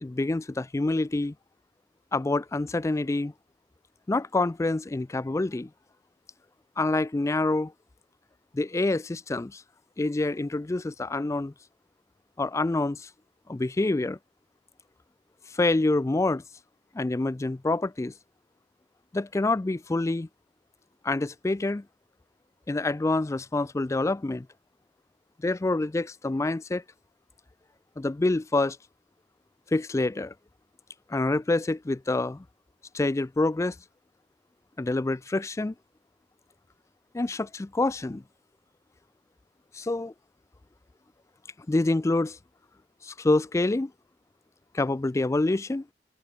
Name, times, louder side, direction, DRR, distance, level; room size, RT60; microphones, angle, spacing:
voice 1, 0.0-1.3 2.1-3.3 4.1-5.7 6.8-7.7 8.5-9.6 10.0-11.5 12.4-13.1 13.5-14.2 15.5-16.4 16.9-18.1 19.1-20.3 21.0-21.8 22.7-24.5 25.4-26.8 28.0-28.8 29.7-30.3 31.1-32.4 32.9-33.7 34.8-35.7 37.1-38.2 39.7-40.1 41.7-42.4 43.0-43.9 44.7-45.8, left 2 dB, 15° left, 0.3 m, -26 dB
head